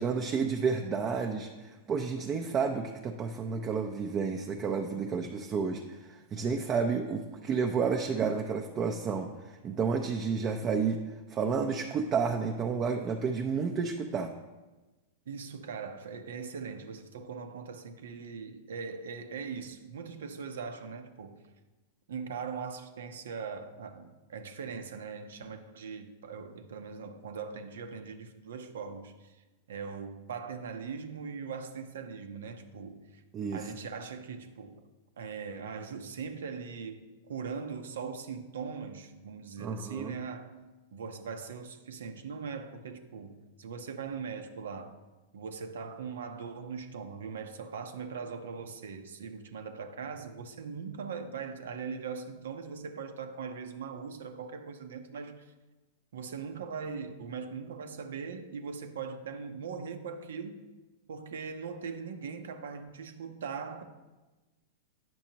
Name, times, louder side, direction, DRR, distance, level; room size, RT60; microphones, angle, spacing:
voice 1, 0.0-11.0 11.3-14.3 33.3-33.6 39.6-40.1, right 5 dB, 30° right, 0.5 m, -31 dB
voice 2, 15.3-21.4 22.1-29.4 29.7-33.2 33.5-34.8 35.2-40.5 40.9-45.0 45.3-55.5 56.1-60.6 61.1-63.8, right 5 dB, 80° right, 0.7 m, -40 dB
9.1 x 6.2 x 2.9 m
hypercardioid pair, 115°, 0 cm